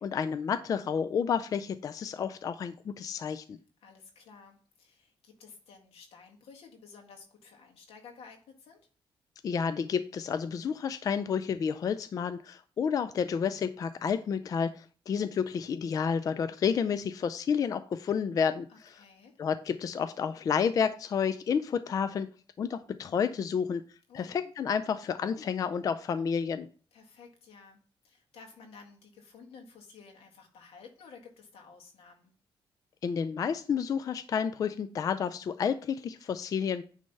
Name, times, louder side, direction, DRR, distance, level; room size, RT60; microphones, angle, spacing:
voice 1, 0.0-3.6 9.4-18.9 19.4-22.3 22.6-23.8 24.1-26.7 33.0-36.8, left 7 dB, 40° left, 11 dB, 0.3 m, -30 dB
voice 2, 3.8-8.8 18.7-19.4 24.1-24.4 26.9-32.3, left 5 dB, 85° left, 2 dB, 1.8 m, -53 dB
9.5 x 3.3 x 5.4 m, 0.41 s
wide cardioid pair, 165°, 10 cm